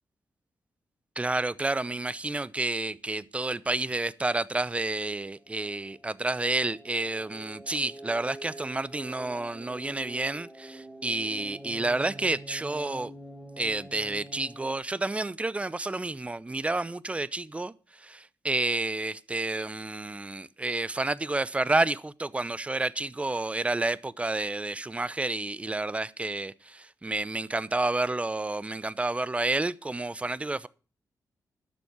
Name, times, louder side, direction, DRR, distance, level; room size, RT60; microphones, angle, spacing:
voice 1, 1.2-13.1 13.6-30.7, right 2 dB, 20° right, 0.7 m, -30 dB
sound 1, 5.3-14.8, right 1 dB, ahead, 1.8 m, -46 dB
12.0 x 7.2 x 8.0 m
cardioid pair, 90°, 7 cm